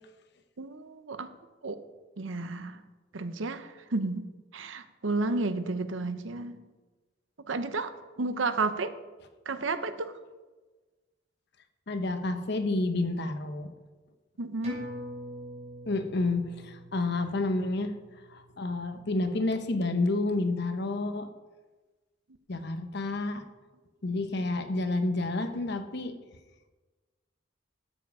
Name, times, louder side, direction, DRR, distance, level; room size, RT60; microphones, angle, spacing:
voice 1, 0.6-1.3 1.6-1.8 2.2-2.8 3.1-6.6 7.5-7.9 8.2-8.9 9.5-10.1 14.4-14.8, right 3 dB, 90° right, 11 dB, 0.8 m, -32 dB
voice 2, 11.9-13.7 15.8-18.0 18.3-21.3 22.5-23.4 24.0-26.1, left 2 dB, 60° left, 7 dB, 1.0 m, -29 dB
sound 1, 14.6-19.6 19.9-20.0, equal, 35° right, 4.1 m, -45 dB
12.5 x 7.3 x 4.8 m, 1.3 s
head